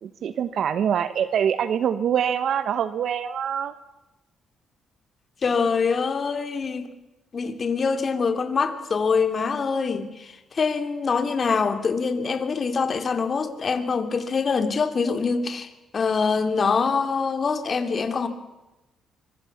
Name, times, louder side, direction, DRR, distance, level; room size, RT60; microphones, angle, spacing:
voice 1, 0.0-3.7, right 8 dB, 65° right, 1.1 m, -24 dB
voice 2, 5.4-6.9 7.3-18.3, left 5 dB, 40° left, 3.0 m, -24 dB
25.0 x 24.0 x 7.3 m
cardioid pair, 90°, 0 cm